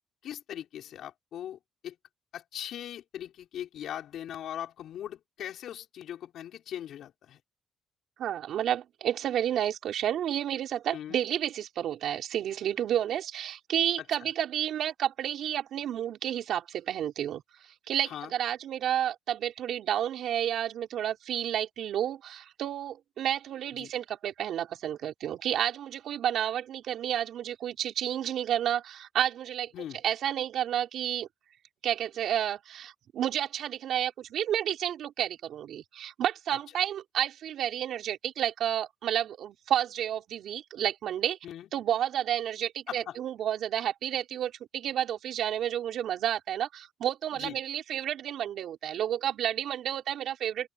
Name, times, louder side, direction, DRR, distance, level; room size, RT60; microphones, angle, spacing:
voice 1, 0.2-2.0 2.3-7.4 10.9-11.2 14.2-14.3 18.0-18.3 23.8-23.9 29.7-30.0 41.4-41.7 42.9-43.2 47.3-47.6, left 10 dB, 75° left, 5.1 m, -40 dB
voice 2, 8.2-17.4 17.9-29.7 30.0-31.3 31.8-41.4 41.7-50.7, right 10 dB, 75° right, 5.1 m, -31 dB
open air
cardioid pair, 90°, 0 cm